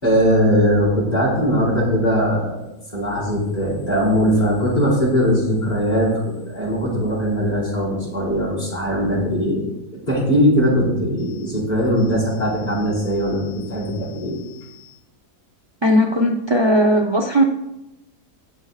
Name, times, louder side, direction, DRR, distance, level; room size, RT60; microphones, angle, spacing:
voice 1, 0.0-2.5 2.9-14.9, equal, 25° left, -6 dB, 4.9 m, -20 dB
voice 2, 15.8-17.4, equal, 45° right, 1 dB, 0.3 m, -17 dB
19.5 x 8.3 x 2.4 m, 0.92 s
omnidirectional pair, 1.7 m